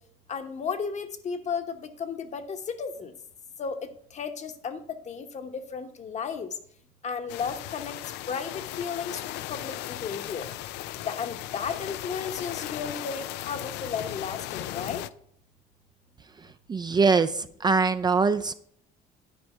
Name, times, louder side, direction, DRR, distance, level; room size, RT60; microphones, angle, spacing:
voice 1, 0.3-3.1 3.6-4.8 5.0-6.6 7.0-8.0 8.3-10.5 11.0-15.0, left 6 dB, 45° left, 8 dB, 1.0 m, -34 dB
sound 1, 7.3-15.1, left 14 dB, 90° left, 0.4 m, -37 dB
voice 2, 16.7-18.5, right 4 dB, 25° right, 10 dB, 0.4 m, -23 dB
9.6 x 4.7 x 5.5 m, 0.66 s
cardioid pair, 110°, 17 cm